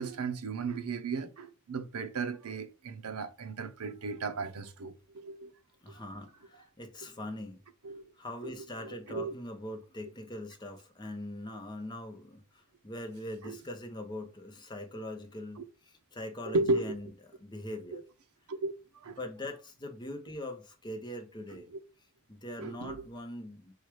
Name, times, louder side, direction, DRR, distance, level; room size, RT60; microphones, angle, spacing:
voice 1, 0.0-5.5 5.9-6.0 7.8-8.1 8.4-8.5 8.8-9.3 13.4-13.6 15.6-15.7 16.4-17.0 17.9-18.0 18.5-19.2 21.7-21.8 22.6-23.0, right 3 dB, 80° right, 0.7 m, -35 dB
voice 2, 5.8-7.6 8.2-17.1 17.4-18.0 19.2-21.7 22.3-23.7, left 1 dB, 20° left, 0.8 m, -42 dB
4.7 x 2.4 x 4.5 m
head